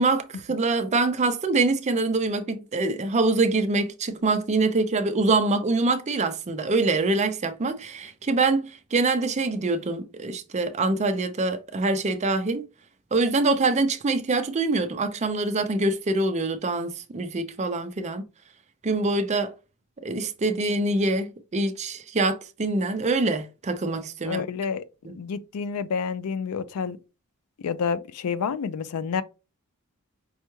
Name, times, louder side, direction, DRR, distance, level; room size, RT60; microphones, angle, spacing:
voice 1, 0.0-12.6 13.1-18.2 18.8-19.5 20.0-24.4 25.0-25.1, right 3 dB, 30° right, 0.4 m, -24 dB
voice 2, 24.3-24.8 25.1-27.0 27.6-29.2, left 6 dB, 85° left, 0.4 m, -29 dB
5.4 x 2.2 x 3.0 m
head